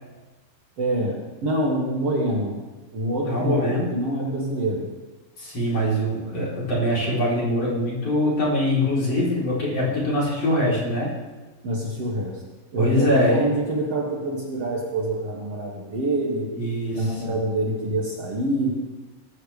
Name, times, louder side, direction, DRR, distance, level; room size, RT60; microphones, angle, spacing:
voice 1, 0.8-2.6 2.9-4.9 11.6-12.4 12.7-16.5 16.9-18.8, right 1 dB, 45° right, -3 dB, 3.1 m, -26 dB
voice 2, 3.2-3.9 5.4-11.1 12.8-13.4 16.5-17.4, left 1 dB, 45° left, -6 dB, 4.9 m, -23 dB
22.5 x 14.5 x 3.5 m, 1.2 s
omnidirectional pair, 4.1 m